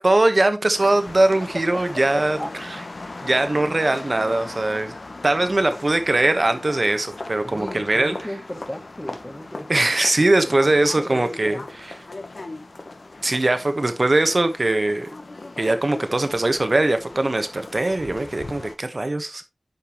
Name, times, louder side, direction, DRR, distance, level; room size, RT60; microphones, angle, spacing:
voice 1, 0.0-2.4 3.2-4.9 5.2-8.1 9.7-11.6 13.2-15.1 15.6-19.4, right 2 dB, 60° right, 1.2 m, -21 dB
sound 1, 0.7-18.8, left 2 dB, 85° left, 1.0 m, -38 dB
voice 2, 2.1-2.5 4.4-4.5 7.4-9.9 10.2-11.7, equal, 15° left, 1.7 m, -35 dB
9.3 x 5.4 x 3.0 m
wide cardioid pair, 50°, 0 cm